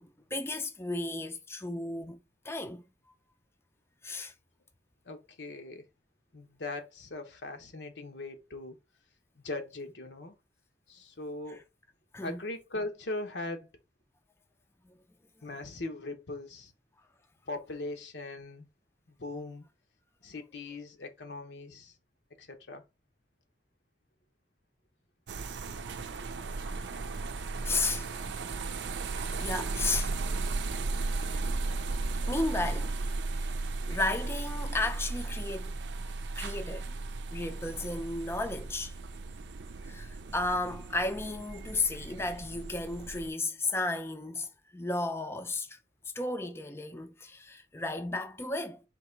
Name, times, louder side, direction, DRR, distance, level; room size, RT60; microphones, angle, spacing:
voice 1, 0.0-2.2 2.4-2.8 4.0-4.3 12.1-12.4 27.7-28.1 29.4-30.1 31.3-31.4 32.3-32.9 33.9-35.7 36.3-37.0 37.3-38.9 39.8-45.8 46.2-48.8, left 2 dB, 15° left, 0.5 m, -33 dB
voice 2, 5.1-5.8 6.3-8.8 9.4-10.3 10.9-11.6 12.2-13.7 15.4-16.7 17.5-18.7 19.1-19.6 20.2-21.9 22.4-22.8, left 2 dB, 80° left, 1.0 m, -40 dB
sound 1, 25.3-43.3, right 3 dB, 85° right, 0.5 m, -35 dB
3.9 x 2.9 x 4.4 m
head